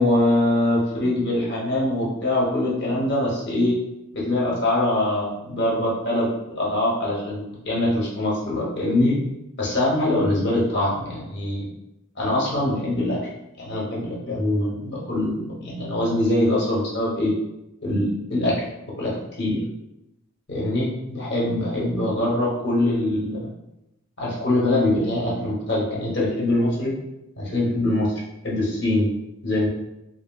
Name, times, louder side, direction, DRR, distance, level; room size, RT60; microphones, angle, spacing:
voice 1, 0.0-3.7 4.1-6.3 6.6-9.1 9.6-11.7 12.2-13.2 13.6-17.3 17.8-18.5 18.8-19.1 19.4-19.6 20.5-23.5 24.2-26.9 27.4-28.1 28.4-29.1 29.4-29.7, left 1 dB, 50° left, -5 dB, 0.8 m, -23 dB
2.8 x 2.8 x 2.2 m, 0.91 s
head